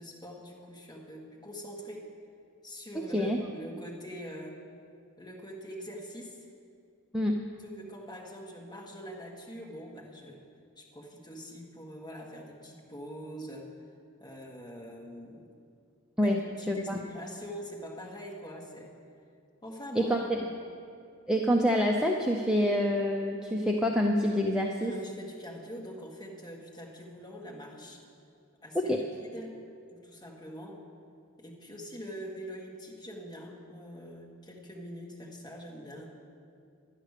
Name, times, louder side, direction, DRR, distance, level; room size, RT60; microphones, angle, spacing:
voice 1, 0.0-2.1 2.6-4.6 5.2-6.4 7.6-10.4 10.8-13.8 14.2-15.5 16.2-18.9 19.6-20.5 24.8-28.0 28.6-29.6 29.9-30.8 31.4-36.1, equal, 20° left, -2 dB, 1.6 m, -44 dB
voice 2, 16.7-17.0 20.0-20.2 21.3-24.9 28.7-29.0, equal, 5° right, 0 dB, 0.5 m, -26 dB
11.5 x 9.7 x 6.6 m, 2.4 s
head